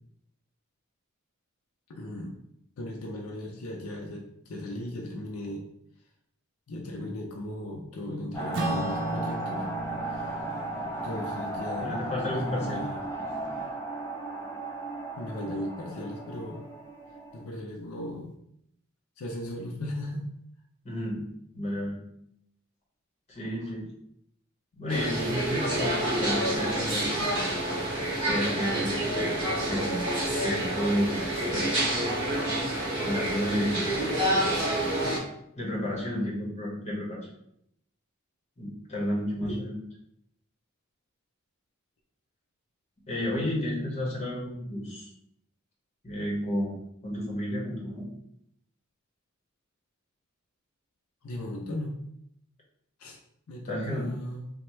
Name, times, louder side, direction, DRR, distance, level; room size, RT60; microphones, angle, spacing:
voice 1, 1.9-2.3 2.8-5.6 6.7-9.7 10.1-10.4 11.0-13.0 15.2-16.6 17.3-18.3 19.2-20.3 39.5-39.6 51.2-51.9 53.0-53.2 53.5-54.4, left 1 dB, 85° left, 1 dB, 0.5 m, -37 dB
sound 1, 8.3-17.4, right 2 dB, 10° left, 0.5 m, -35 dB
Acoustic guitar / Strum, 8.5-13.3, right 1 dB, 60° right, 0.6 m, -37 dB
voice 2, 11.8-12.8 20.8-21.2 21.5-22.0 23.3-23.8 24.7-27.3 28.2-29.4 29.7-30.0 30.4-31.2 31.5-31.8 33.0-33.8 35.6-37.3 38.6-39.8 43.1-45.1 46.0-46.8 47.0-48.0 53.7-54.2, equal, 30° left, -4 dB, 1.0 m, -31 dB
sound 2, 24.9-35.2, right 1 dB, 25° right, 1.4 m, -28 dB
3.2 x 2.1 x 3.0 m, 0.74 s
head